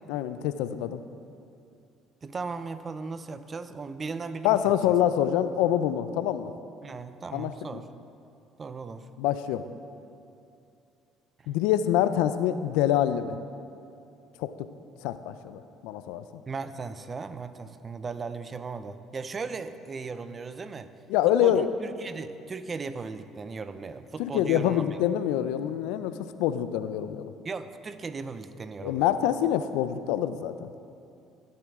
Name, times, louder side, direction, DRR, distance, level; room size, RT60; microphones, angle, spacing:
voice 1, 0.1-1.0 4.4-6.5 7.3-7.8 9.2-9.7 11.5-13.4 14.4-14.7 15.0-16.4 21.1-21.7 24.2-27.3 28.8-30.7, left 11 dB, 85° left, 12 dB, 0.5 m, -26 dB
voice 2, 2.2-4.6 6.8-7.9 8.6-9.1 16.5-20.9 21.4-24.8 27.4-29.0, right 4 dB, 35° right, 12 dB, 0.6 m, -37 dB
13.0 x 10.5 x 3.7 m, 2.6 s
supercardioid pair, 80°, 0 cm